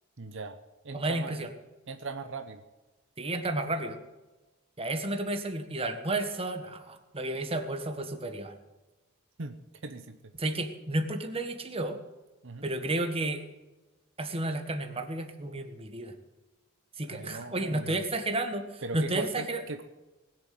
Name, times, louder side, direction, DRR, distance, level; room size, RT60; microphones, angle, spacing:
voice 1, 0.2-0.6 0.8-1.4 1.9-2.6 9.4-9.6 9.8-10.2 12.4-12.7 17.1-18.0 18.8-19.8, right 3 dB, 65° right, 7 dB, 1.0 m, -39 dB
voice 2, 0.9-1.5 3.2-4.0 4.8-8.5 10.4-12.0 12.6-13.4 14.2-16.1 17.0-19.6, right 2 dB, 30° right, 6 dB, 1.6 m, -32 dB
20.0 x 7.6 x 7.8 m, 1.1 s
head